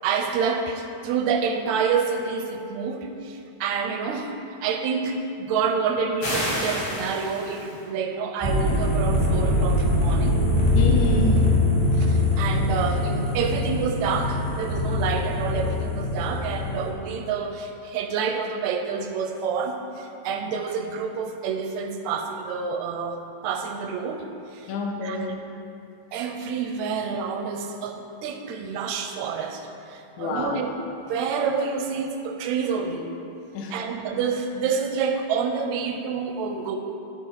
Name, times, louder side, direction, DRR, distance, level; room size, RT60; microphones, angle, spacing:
voice 1, 0.0-10.4 12.0-24.3 24.5-24.7 25.0-25.4 26.1-30.7 31.1-33.1 33.7-36.8, right 6 dB, 85° right, 5 dB, 1.9 m, -28 dB
sound 1, 6.2-7.8, equal, 50° left, 3.0 m, -29 dB
sound 2, 8.4-16.9, left 1 dB, 15° left, 1.0 m, -22 dB
voice 2, 10.8-11.6 24.7-25.3 30.2-30.6 33.5-33.7, left 2 dB, 75° left, 0 dB, 2.1 m, -28 dB
13.0 x 4.4 x 4.6 m, 2.7 s
omnidirectional pair, 3.4 m